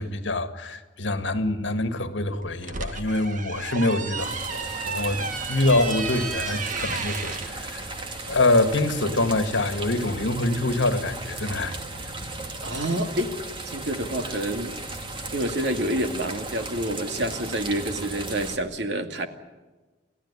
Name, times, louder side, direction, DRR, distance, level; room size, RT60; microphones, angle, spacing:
voice 1, 0.0-7.9 8.3-11.8, left 2 dB, 75° left, 2.0 m, -25 dB
sound 1, 2.4-7.5, right 4 dB, 45° right, 1.7 m, -33 dB
sound 2, 4.2-18.6, right 2 dB, 25° right, 2.5 m, -36 dB
voice 2, 12.6-13.3 13.7-14.7 15.3-19.3, right 1 dB, 65° right, 2.2 m, -28 dB
29.0 x 15.5 x 9.9 m
head